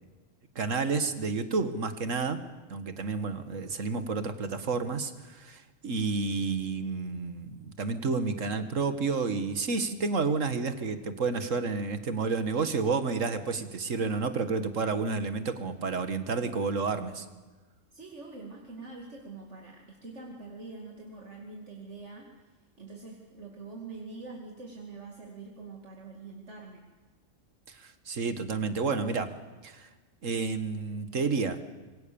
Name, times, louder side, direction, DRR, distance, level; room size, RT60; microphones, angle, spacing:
voice 1, 0.6-2.4 2.7-17.3 27.7-29.3 29.6-29.9 30.2-31.6, right 4 dB, 80° right, 10 dB, 2.0 m, -30 dB
voice 2, 17.9-26.8, right 3 dB, 65° right, 0 dB, 2.9 m, -45 dB
26.5 x 23.0 x 7.0 m, 1.3 s
omnidirectional pair, 1.3 m